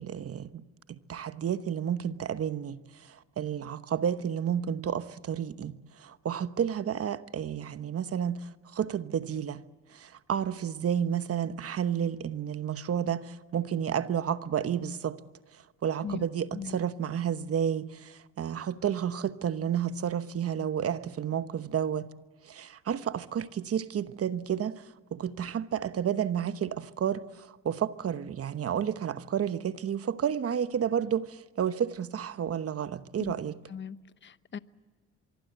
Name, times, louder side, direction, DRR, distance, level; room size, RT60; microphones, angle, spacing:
voice 1, 0.0-9.6 9.9-15.2 15.8-22.1 22.4-33.6, right 8 dB, 50° right, 1.1 m, -31 dB
voice 2, 33.7-34.6, left 7 dB, 40° left, 0.9 m, -39 dB
24.5 x 24.0 x 7.9 m
cardioid pair, 90°, 30 cm